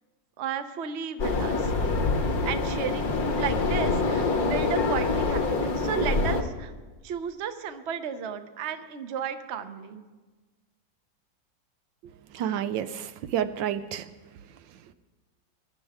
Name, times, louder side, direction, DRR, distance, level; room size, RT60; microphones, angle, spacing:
voice 1, 0.4-1.7 2.4-6.7 7.0-10.0, right 8 dB, 50° right, 8 dB, 0.8 m, -33 dB
Wind blowing on the top of a hill, 1.2-6.4, left 3 dB, 55° left, 1.5 m, -25 dB
voice 2, 12.3-14.1, right 10 dB, 80° right, 11 dB, 1.3 m, -29 dB
22.5 x 11.5 x 3.6 m, 1.3 s
omnidirectional pair, 2.0 m